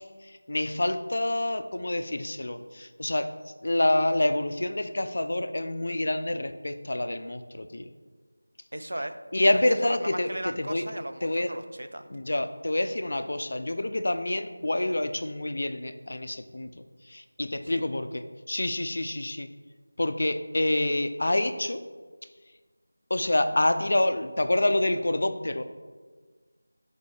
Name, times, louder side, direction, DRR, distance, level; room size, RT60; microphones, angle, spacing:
voice 1, 0.5-3.3 3.6-7.9 9.3-10.3 10.6-10.8 11.2-11.5 12.1-16.7 17.1-18.1 18.5-19.5 20.0-21.8 23.1-25.6, left 1 dB, 55° left, 9 dB, 0.4 m, -27 dB
voice 2, 8.7-9.2 9.5-12.1 17.6-17.9, right 1 dB, 90° right, 9 dB, 0.5 m, -37 dB
7.2 x 4.2 x 3.3 m, 1.4 s
figure-of-eight pair, 175°, 0 cm